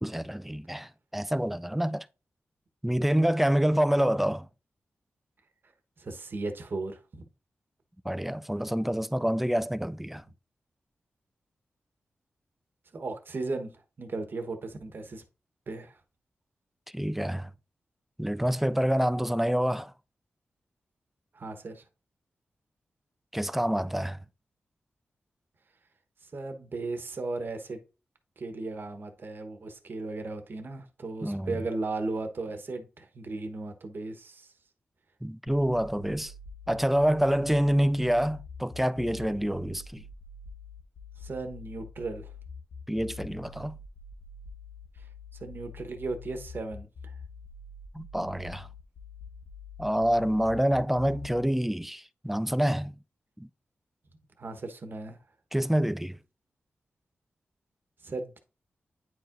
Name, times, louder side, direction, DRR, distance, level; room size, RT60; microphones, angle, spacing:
voice 1, 0.0-2.1 2.8-4.5 8.1-10.2 16.9-17.5 18.2-19.9 23.3-24.2 31.2-31.6 35.2-36.3 36.7-40.0 42.9-43.8 47.9-48.7 49.8-53.0 53.4-53.5 55.5-56.2, equal, 5° right, 0.3 m, -27 dB
voice 2, 6.0-7.2 12.9-13.7 14.0-15.2 15.7-16.0 21.3-21.8 26.3-27.8 28.4-34.5 41.2-42.3 45.0-45.1 45.4-47.1 54.4-55.2 58.0-58.4, right 3 dB, 55° right, 1.1 m, -36 dB
sound 1, 36.2-51.5, left 4 dB, 75° left, 0.8 m, -45 dB
9.2 x 4.6 x 2.5 m
cardioid pair, 75°, 4 cm